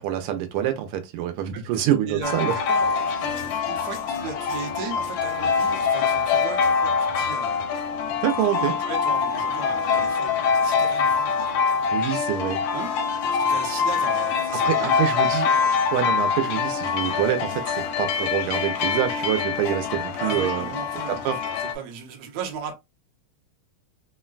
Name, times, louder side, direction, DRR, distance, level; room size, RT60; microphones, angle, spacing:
voice 1, 0.0-2.5 8.2-8.7 11.9-12.6 14.6-15.5 15.9-20.7 21.1-21.4, right 11 dB, 85° right, 1.5 m, -26 dB
voice 2, 1.7-7.6 8.5-11.7 12.7-12.9 13.3-15.1 20.2-22.7, right 6 dB, 60° right, 1.1 m, -37 dB
sound 1, 2.2-21.7, left 6 dB, 75° left, 1.2 m, -24 dB
3.7 x 2.1 x 2.3 m
omnidirectional pair, 2.4 m